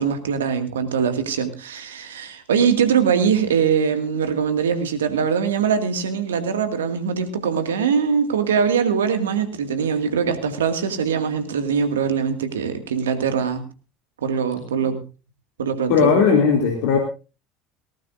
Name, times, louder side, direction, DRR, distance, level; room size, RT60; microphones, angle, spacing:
voice 1, 0.0-13.6 14.2-15.0 15.6-16.1, right 7 dB, 80° right, 9 dB, 2.1 m, -22 dB
voice 2, 15.9-17.0, left 6 dB, 65° left, 2 dB, 3.0 m, -17 dB
19.0 x 18.0 x 2.6 m, 0.32 s
figure-of-eight pair, 70°, 0 cm